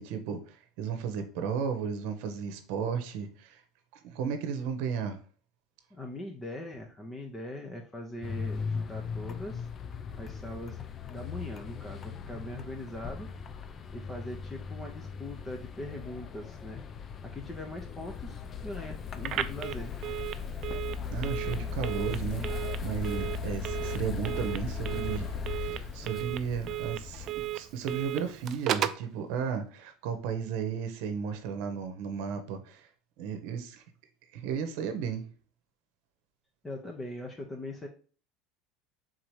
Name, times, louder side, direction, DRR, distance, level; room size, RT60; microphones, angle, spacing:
voice 1, 0.0-3.6 4.0-5.2 21.1-32.9 33.2-33.8 34.3-35.2, right 7 dB, 70° right, 0.8 m, -34 dB
voice 2, 5.9-9.7 10.2-10.8 11.1-13.3 13.9-16.8 17.2-19.9 36.6-37.9, left 1 dB, 20° left, 0.8 m, -41 dB
sound 1, 8.2-27.3, left 5 dB, 35° left, 0.4 m, -38 dB
Telephone, 19.2-29.1, right 12 dB, 50° right, 0.4 m, -36 dB
3.8 x 2.9 x 4.7 m
supercardioid pair, 105°, 0 cm